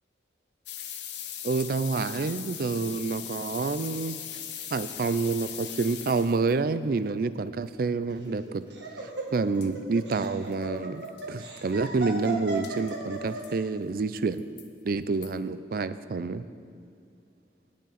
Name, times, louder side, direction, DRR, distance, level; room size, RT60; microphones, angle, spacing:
sound 1, 0.7-6.5 9.3-9.4 9.6-9.7 10.2-10.3 10.5-10.6 11.0-11.2 12.6-12.9 13.4-13.5 14.2-14.7 15.2-15.3, left 10 dB, 75° left, 0.8 m, -39 dB
voice 1, 1.4-4.2 4.7-8.6 9.3-14.4 14.8-16.4, right 4 dB, 50° right, 14 dB, 0.4 m, -28 dB
Laughter, 8.1-13.6, right 3 dB, 75° right, 1.6 m, -36 dB
18.0 x 6.5 x 4.1 m, 2.4 s
head